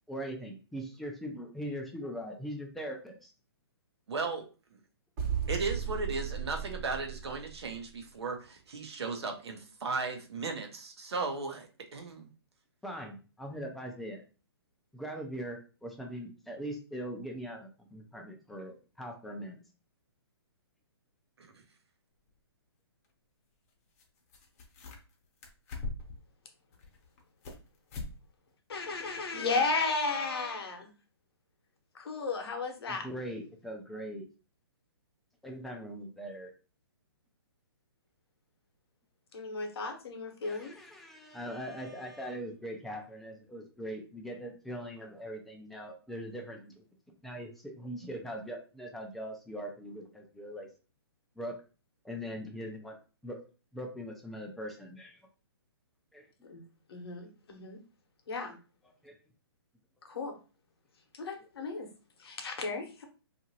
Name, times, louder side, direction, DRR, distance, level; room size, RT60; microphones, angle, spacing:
voice 1, 0.1-3.3 12.8-14.2 14.9-19.6 32.9-34.3 35.4-36.5 40.4-50.7 51.4-51.6 52.0-53.0 53.2-53.4 53.7-55.3 56.1-56.3 59.0-59.2, equal, ahead, 1 dB, 0.3 m, -41 dB
voice 2, 4.1-4.8 5.5-12.3 21.4-21.6, right 4 dB, 75° right, 4 dB, 0.8 m, -36 dB
sound 1, 5.2-7.9, right 7 dB, 40° right, 1.0 m, -36 dB
sound 2, 22.3-22.4 24.0-24.1 24.3-25.1 25.4-26.2 26.7-27.6 27.9-28.2 28.5-28.6 29.1-29.2, left 2 dB, 35° left, 0.7 m, -41 dB
voice 3, 28.7-30.9 31.9-33.1 39.3-40.8 56.5-56.6 56.9-57.8 58.3-58.6 60.0-60.4 61.1-61.9 62.2-63.0, left 3 dB, 65° left, 4 dB, 0.8 m, -34 dB
2.8 x 2.5 x 2.8 m, 0.35 s
hypercardioid pair, 145°, 14 cm